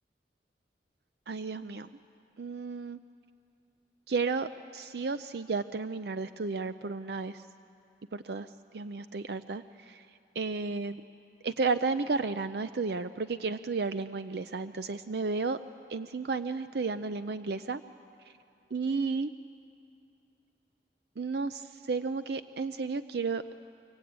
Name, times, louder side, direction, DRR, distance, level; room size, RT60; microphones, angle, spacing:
voice 1, 1.3-1.9 2.4-3.0 4.1-7.4 8.1-10.1 10.4-11.0 11.4-15.6 15.9-17.8 18.2-18.3 18.7-19.3 21.2-23.4, right 4 dB, 65° right, 11 dB, 0.5 m, -33 dB
24.5 x 23.5 x 8.7 m, 2.7 s
head